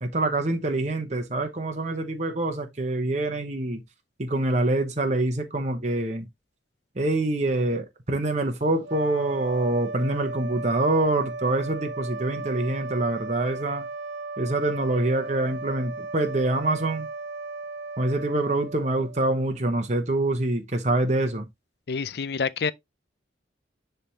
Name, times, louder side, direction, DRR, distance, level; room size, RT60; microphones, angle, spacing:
voice 1, 0.0-3.8 4.2-6.2 7.0-13.9 14.4-17.1 18.0-21.5, right 2 dB, 40° right, 0.9 m, -25 dB
sound 1, 8.8-19.4, right 3 dB, 90° right, 0.8 m, -36 dB
voice 2, 21.9-22.7, left 5 dB, 60° left, 0.4 m, -27 dB
10.0 x 3.5 x 2.8 m
head